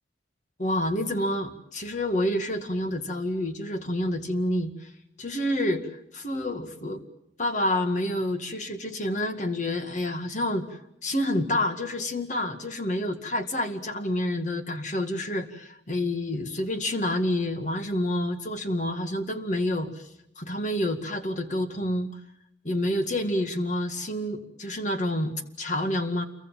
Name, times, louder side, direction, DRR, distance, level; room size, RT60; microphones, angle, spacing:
voice 1, 0.6-4.9 5.2-7.0 7.4-10.7 11.0-19.9 20.4-22.2 22.6-26.2, left 1 dB, 40° left, 7 dB, 2.1 m, -28 dB
28.5 x 23.0 x 7.5 m, 0.78 s
head